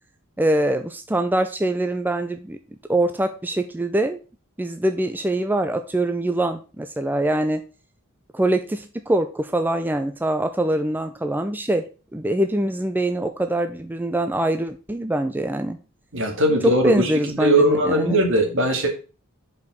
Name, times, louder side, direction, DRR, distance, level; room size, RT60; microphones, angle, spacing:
voice 1, 0.4-2.6 2.9-4.2 4.6-7.6 8.3-11.8 12.1-15.8 16.8-18.2, right 1 dB, 10° right, 8 dB, 0.4 m, -23 dB
voice 2, 16.1-17.1 17.4-18.9, right 1 dB, 65° right, 3 dB, 2.2 m, -19 dB
5.3 x 4.8 x 6.2 m, 0.35 s
head